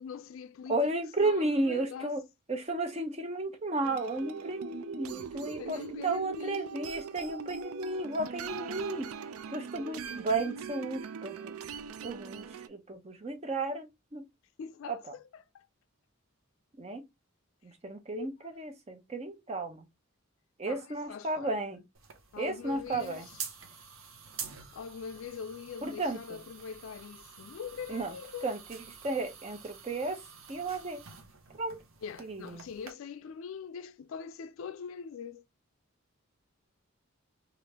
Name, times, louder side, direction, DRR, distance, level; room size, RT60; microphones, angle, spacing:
voice 1, 0.0-0.9 1.2-2.1 5.6-6.9 14.6-15.7 18.1-18.3 20.7-21.5 22.3-23.2 24.7-28.6 32.0-35.4, left 6 dB, 70° left, 0.3 m, -43 dB
voice 2, 0.7-2.2 2.5-11.6 12.0-14.2 14.9-15.1 16.8-17.0 17.6-19.9 20.6-21.8 22.4-23.3 25.8-26.4 27.9-28.2 28.4-28.8 29.0-30.2 30.5-31.0 31.6-31.8 32.2-32.7, right 2 dB, 30° right, 0.6 m, -33 dB
sound 1, 3.8-12.7, right 6 dB, 90° right, 0.3 m, -41 dB
sound 2, 21.9-32.9, right 6 dB, 70° right, 0.7 m, -48 dB
3.3 x 2.5 x 2.9 m
head